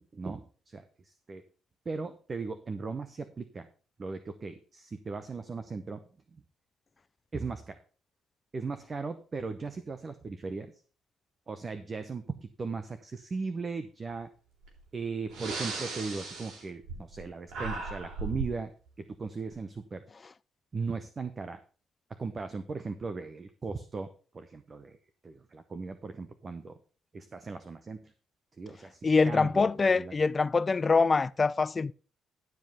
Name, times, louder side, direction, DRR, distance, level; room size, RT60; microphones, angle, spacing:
voice 1, 0.1-1.4 1.8-3.7 4.0-6.0 7.3-7.8 8.5-10.7 11.5-14.3 14.9-18.7 19.0-20.0 20.7-21.6 22.1-25.0 25.2-26.8 27.1-28.1 28.6-30.2, right 4 dB, 35° right, 0.9 m, -38 dB
Breathing, 14.6-14.8 15.3-17.2 17.5-18.6, right 3 dB, 80° right, 4.1 m, -37 dB
voice 2, 29.0-31.9, left 4 dB, 30° left, 0.4 m, -24 dB
12.0 x 5.3 x 5.8 m
cardioid pair, 90°, 0 cm